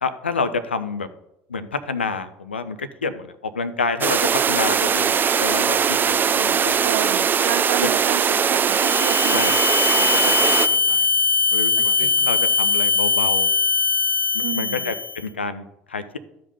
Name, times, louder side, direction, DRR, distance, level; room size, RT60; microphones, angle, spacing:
voice 1, 0.0-1.1 1.5-6.8 9.3-9.5 10.0-11.1 11.5-13.5 14.3-16.2, left 4 dB, 90° left, 0.6 m, -29 dB
sound 1, 4.0-10.7, right 7 dB, 35° right, 0.6 m, -20 dB
voice 2, 6.7-9.6 11.8-12.3 14.4-14.9, right 14 dB, 75° right, 0.3 m, -31 dB
sound 2, 8.6-15.2, left 4 dB, 35° left, 0.7 m, -21 dB
12.5 x 5.1 x 5.5 m
figure-of-eight pair, 60°, 6 cm